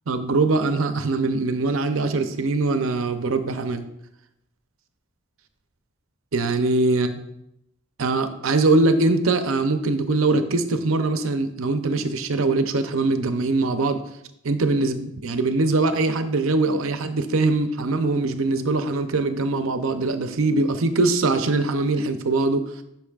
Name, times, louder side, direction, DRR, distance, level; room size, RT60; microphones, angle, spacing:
voice 1, 0.1-3.9 6.3-7.2 8.0-14.0 14.4-22.6, right 3 dB, 70° right, 9 dB, 0.7 m, -22 dB
11.5 x 6.0 x 2.4 m, 0.81 s
head